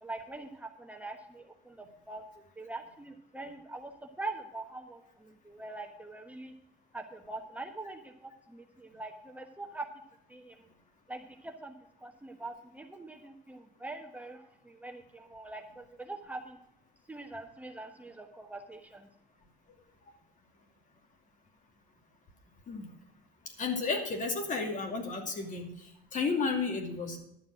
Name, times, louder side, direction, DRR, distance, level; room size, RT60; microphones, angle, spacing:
voice 1, 0.0-6.5 6.9-9.9 10.3-10.7 11.1-16.6 17.1-19.1, right 2 dB, 10° right, 3 dB, 1.2 m, -43 dB
voice 2, 23.6-27.2, left 4 dB, 50° left, 3 dB, 2.6 m, -32 dB
11.5 x 7.2 x 6.3 m, 0.81 s
cardioid pair, 110°, 17 cm